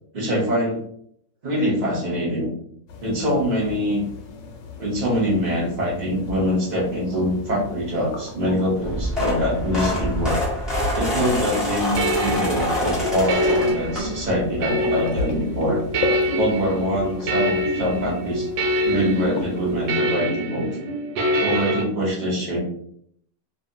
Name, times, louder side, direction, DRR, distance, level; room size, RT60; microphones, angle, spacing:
voice 1, 0.1-0.8 1.4-2.5 3.0-4.0 4.8-10.4 10.9-15.8 16.4-18.5 18.8-20.7 21.4-22.6, equal, 55° right, -4 dB, 0.4 m, -24 dB
sound 1, 2.9-19.9, left 4 dB, 80° left, 1.2 m, -36 dB
sound 2, 8.8-14.4 14.9-15.2 16.4-16.5 16.7-16.8 17.2-17.3, left 1 dB, ahead, 0.5 m, -26 dB
sound 3, 11.3-21.8, equal, 80° right, 1.3 m, -25 dB
2.7 x 2.6 x 2.6 m, 0.67 s
omnidirectional pair, 2.0 m